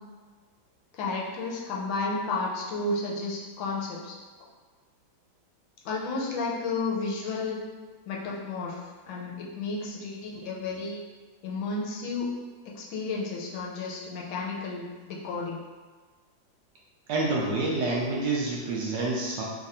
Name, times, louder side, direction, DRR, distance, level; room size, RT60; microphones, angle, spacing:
voice 1, 0.9-4.2 5.8-7.6 8.1-11.0 11.4-12.3 12.7-15.6, left 3 dB, 75° left, -3 dB, 1.4 m, -32 dB
voice 2, 17.1-19.4, right 2 dB, 70° right, -3 dB, 1.1 m, -28 dB
3.5 x 2.5 x 4.1 m, 1.4 s
omnidirectional pair, 2.2 m